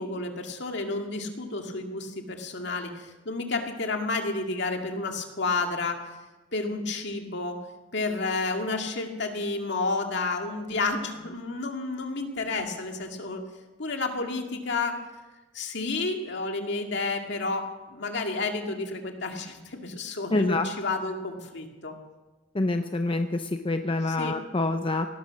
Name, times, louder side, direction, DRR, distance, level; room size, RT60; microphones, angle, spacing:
voice 1, 0.0-6.0 6.5-7.6 7.9-13.4 13.8-15.0 15.5-22.0 24.0-24.3, left 3 dB, 65° left, 3 dB, 2.1 m, -31 dB
voice 2, 20.3-20.7 22.5-25.1, left 2 dB, 30° left, 7 dB, 0.7 m, -26 dB
18.0 x 12.0 x 6.4 m, 1.2 s
head